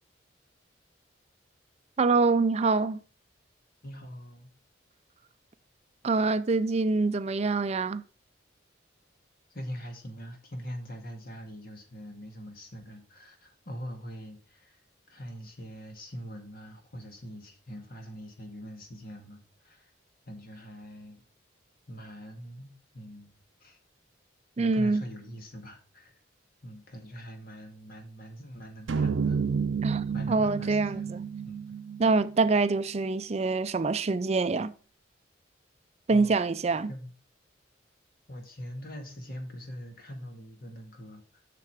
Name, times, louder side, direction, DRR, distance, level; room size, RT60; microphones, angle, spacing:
voice 1, 2.0-3.0 6.0-8.0 24.6-25.0 29.8-31.2 32.0-34.7 36.1-36.9, right 3 dB, 35° right, 0.4 m, -25 dB
voice 2, 3.8-4.5 9.5-14.8 15.1-19.9 20.3-21.2 21.9-23.3 23.6-23.8 24.6-26.2 26.6-29.4 30.1-31.6 36.1-36.3 36.9-37.1 38.3-41.4, equal, 50° left, 2.1 m, -43 dB
sound 1, 28.9-33.2, right 6 dB, 85° right, 0.5 m, -31 dB
7.6 x 6.7 x 4.9 m
head